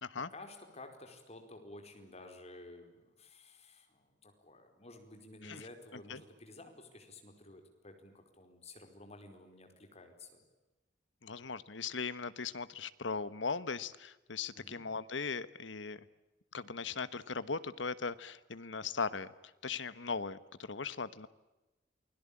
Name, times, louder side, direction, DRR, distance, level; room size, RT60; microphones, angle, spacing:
voice 1, 0.2-10.4 11.3-11.5 14.5-14.8, left 2 dB, 35° left, 5 dB, 4.8 m, -53 dB
voice 2, 11.2-16.0 16.5-19.3 19.6-20.4 20.7-21.3, left 5 dB, 75° left, 15 dB, 1.2 m, -38 dB
29.0 x 21.5 x 8.7 m, 1.1 s
head